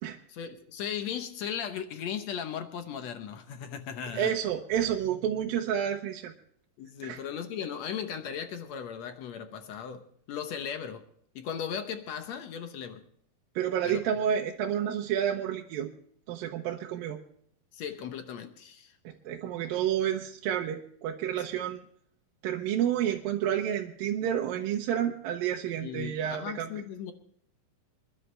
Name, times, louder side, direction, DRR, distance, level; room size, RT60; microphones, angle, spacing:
voice 1, 0.3-4.3 6.8-11.1 11.3-13.0 13.8-14.0 17.7-19.0 25.8-27.1, left 8 dB, 65° left, 8 dB, 1.8 m, -37 dB
voice 2, 4.1-6.3 7.0-7.2 13.6-15.9 16.3-17.2 19.1-21.8 22.4-26.7, right 9 dB, 80° right, 1 dB, 2.6 m, -30 dB
26.5 x 11.5 x 3.3 m, 0.64 s
omnidirectional pair, 4.1 m